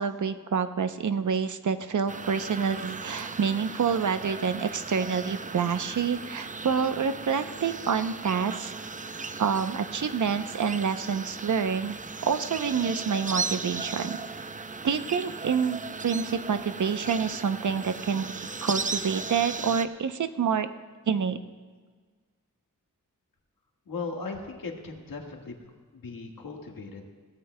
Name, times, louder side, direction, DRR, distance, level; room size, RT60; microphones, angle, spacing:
voice 1, 0.0-8.7 9.4-12.0 12.2-14.2 14.8-20.7 21.1-21.4, right 6 dB, 60° right, 10 dB, 0.7 m, -27 dB
sound 1, 2.1-19.8, right 4 dB, 25° right, 0.5 m, -37 dB
voice 2, 23.9-25.6 25.9-27.0, left 4 dB, 80° left, 1 dB, 1.6 m, -37 dB
21.0 x 16.5 x 2.2 m, 1.5 s
wide cardioid pair, 110°, 34 cm